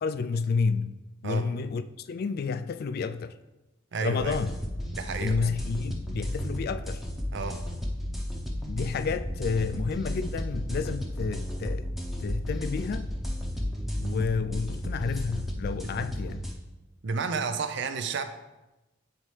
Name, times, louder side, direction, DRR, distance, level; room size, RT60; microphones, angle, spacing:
voice 1, 0.0-3.4 4.0-4.5 5.2-7.0 8.7-11.9 12.2-13.1 13.9-16.4, left 5 dB, 55° left, 0.3 m, -30 dB
voice 2, 3.9-4.4 4.9-5.6 7.3-7.6 15.8-15.9 17.0-18.2, right 4 dB, 65° right, 0.5 m, -31 dB
sound 1, 4.2-16.5, equal, ahead, 0.8 m, -33 dB
8.9 x 4.1 x 3.2 m
head